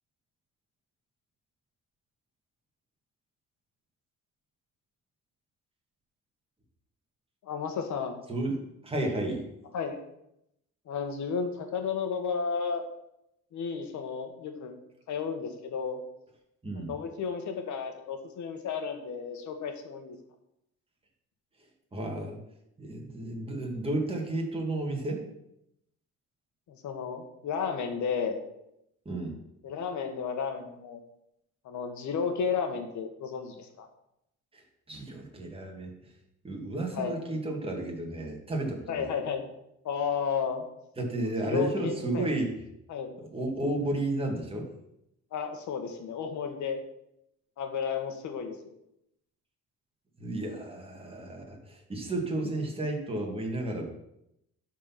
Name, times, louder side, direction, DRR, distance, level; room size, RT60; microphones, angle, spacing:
voice 1, 7.4-8.2 9.7-10.0 10.9-12.8 13.5-14.8 15.1-16.0 16.9-20.2 26.7-28.4 29.6-31.0 31.6-33.9 36.9-37.2 38.9-39.4 39.8-40.7 41.4-42.3 42.9-43.1 45.3-46.8 47.6-48.6, left 6 dB, 65° left, 6 dB, 1.6 m, -33 dB
voice 2, 8.3-9.4 16.6-16.9 21.9-22.4 22.8-25.2 29.1-29.3 34.5-36.1 36.4-39.1 41.0-42.5 43.2-44.7 50.2-53.8, right 1 dB, 15° right, 0 dB, 2.2 m, -32 dB
12.0 x 4.6 x 5.8 m, 0.81 s
cardioid pair, 130°, 32 cm